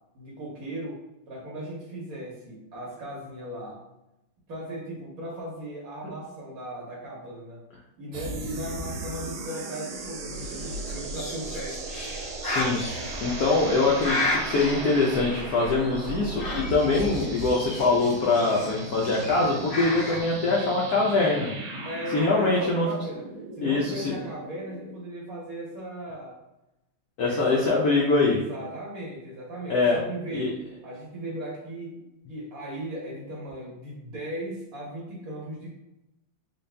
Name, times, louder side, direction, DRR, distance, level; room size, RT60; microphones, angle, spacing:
voice 1, 0.1-1.0 1.3-3.8 4.5-7.6 8.0-11.8 21.8-23.2 23.6-26.4 27.2-27.8 28.2-30.6 30.8-32.0 32.3-35.7, right 1 dB, 60° right, -3 dB, 1.0 m, -37 dB
sound 1, 8.1-24.9, right 2 dB, 80° right, 1.6 m, -37 dB
Bird, 10.3-20.2, left 1 dB, 55° left, 1.5 m, -35 dB
voice 2, 12.4-12.8 13.2-21.5 22.1-22.9 23.6-24.2 27.2-28.4 29.7-30.0 30.3-30.5, left 3 dB, 70° left, -3 dB, 0.9 m, -23 dB
4.0 x 2.4 x 3.3 m, 0.92 s
omnidirectional pair, 2.2 m